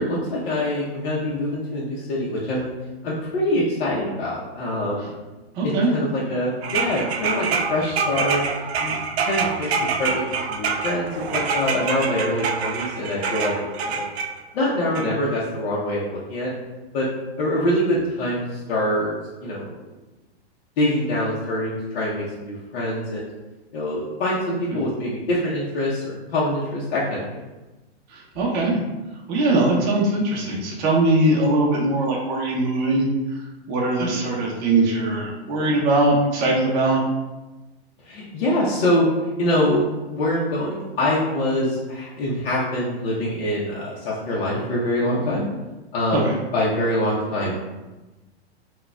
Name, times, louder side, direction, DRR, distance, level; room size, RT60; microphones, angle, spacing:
voice 1, 0.0-2.7 3.0-5.2 5.6-8.4 8.8-10.2 10.5-13.5 13.8-14.0 14.5-16.5 16.9-17.1 17.4-19.1 19.4-19.7 20.8-23.3 23.7-27.2 34.0-34.2 38.0-39.1 39.4-39.8 40.1-45.5 45.9-47.8, left 1 dB, 60° left, -6 dB, 0.7 m, -24 dB
voice 2, 5.5-5.9 15.0-15.1 24.7-24.8 28.1-28.8 29.3-33.1 33.7-37.0 46.1-46.3, right 2 dB, 30° right, -3 dB, 0.6 m, -21 dB
sound 1, 6.6-14.3 15.0-15.1, right 5 dB, 75° right, 0.5 m, -26 dB
3.8 x 2.3 x 2.2 m, 1.1 s
hypercardioid pair, 130°, 32 cm